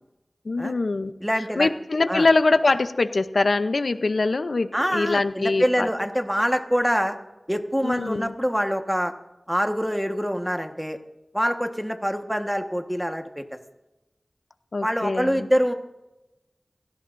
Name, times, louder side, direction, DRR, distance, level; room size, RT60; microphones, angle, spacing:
voice 1, 0.5-1.1 1.6-5.9 7.8-8.3 14.7-15.5, left 3 dB, 80° left, 10 dB, 0.6 m, -23 dB
voice 2, 1.2-1.7 2.1-2.3 4.7-7.2 7.5-9.1 9.5-11.0 11.3-13.4 14.8-15.7, equal, ahead, 5 dB, 1.4 m, -25 dB
28.5 x 16.5 x 2.6 m, 1.0 s
wide cardioid pair, 65°, 0 cm